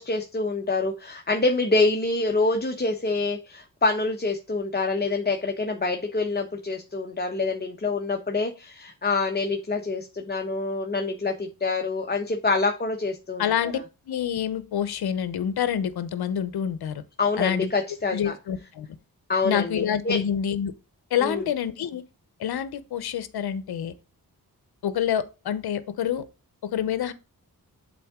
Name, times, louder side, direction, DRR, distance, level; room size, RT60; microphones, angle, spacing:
voice 1, 0.0-13.5 17.2-18.3 19.3-20.2 21.2-21.5, left 3 dB, 25° left, 1.0 m, -26 dB
voice 2, 13.4-13.8 14.1-17.0 17.4-17.7 18.1-18.9 19.4-20.7 21.1-22.0 22.4-23.9 24.8-26.2 26.6-27.1, left 9 dB, 75° left, 0.8 m, -27 dB
7.7 x 3.9 x 3.6 m
cardioid pair, 65°, 38 cm